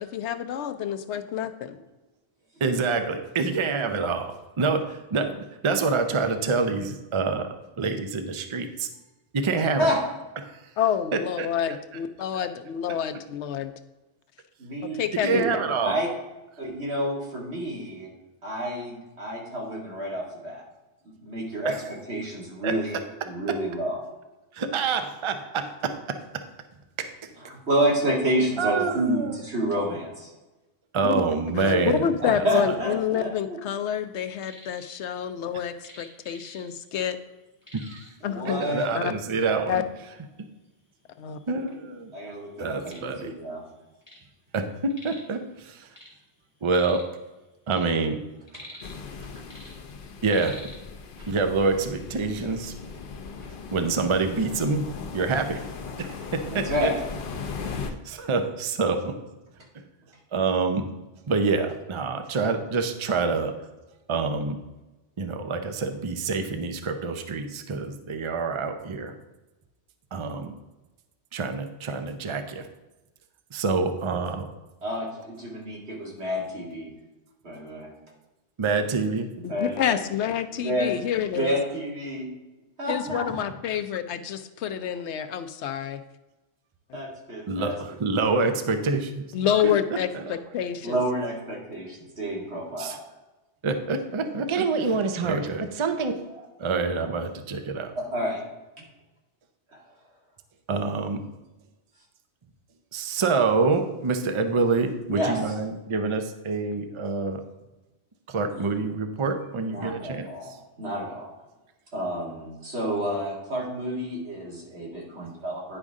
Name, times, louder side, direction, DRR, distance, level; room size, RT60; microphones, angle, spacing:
voice 1, 0.0-1.8 10.8-13.7 14.8-15.4 31.0-31.2 31.5-37.2 38.2-39.1 39.7-39.8 41.2-41.4 79.4-81.6 82.9-86.0 89.3-91.0, left 9 dB, 90° left, 10 dB, 0.9 m, -28 dB
voice 2, 2.6-8.9 9.3-9.9 10.4-10.6 11.4-11.5 15.2-16.0 21.6-21.8 22.6-22.7 24.5-25.9 28.6-29.3 30.9-32.1 32.7-32.8 37.7-38.0 38.5-39.8 40.4-40.5 41.5-42.1 42.6-43.3 44.5-45.9 46.6-47.0 47.7-48.2 50.2-50.6 51.3-52.7 53.7-54.9 55.1-55.6 56.0-56.9 57.6-59.1 60.3-60.9 61.3-63.5 64.1-64.6 65.2-69.1 70.1-70.5 71.3-72.7 73.5-74.5 78.6-79.4 87.5-89.2 89.6-89.7 90.1-90.4 92.8-93.0 93.6-96.1 96.6-97.9 100.7-101.2 102.9-107.4 108.3-110.6, right 4 dB, 35° right, 7 dB, 0.6 m, -26 dB
voice 3, 9.6-10.0 14.6-15.0 15.3-16.1 16.6-18.1 18.4-20.6 21.2-21.7 22.1-23.0 23.2-24.0 27.4-30.3 32.2-33.6 38.2-38.9 42.1-43.6 56.5-56.9 74.8-76.9 77.4-77.9 79.5-80.0 80.5-81.0 81.3-82.3 82.8-83.4 86.9-87.7 90.8-93.0 98.0-98.4 99.7-99.8 105.1-105.4 108.5-108.6 109.6-111.3 111.9-115.8, equal, 75° right, -3 dB, 2.5 m, -29 dB
sound 1, 34.1-34.9 35.2-37.0 37.2-37.3 37.6-38.3 39.1-39.2 39.7-39.8 40.5-40.6 40.9-41.7 42.2-44.3 44.6-45.4 45.7-47.2 47.5-49.2 49.5-50.8, left 1 dB, 25° left, 2.1 m, -46 dB
sound 2, 48.8-57.9, left 5 dB, 55° left, 0.8 m, -38 dB
10.0 x 5.2 x 3.6 m, 1.1 s
omnidirectional pair, 1.1 m